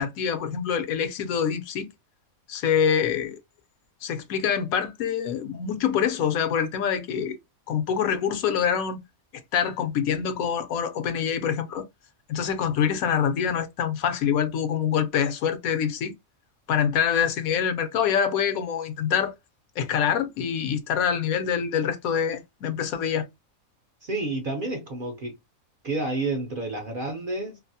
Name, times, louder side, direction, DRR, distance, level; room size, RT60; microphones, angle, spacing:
voice 1, 0.0-1.9 2.5-3.4 4.0-7.4 7.7-9.0 9.5-11.8 12.3-16.1 16.7-19.3 19.8-23.3, left 8 dB, 80° left, 1.1 m, -25 dB
voice 2, 24.0-25.4 25.8-27.6, right 2 dB, 50° right, 0.6 m, -30 dB
2.7 x 2.5 x 2.6 m
omnidirectional pair, 1.5 m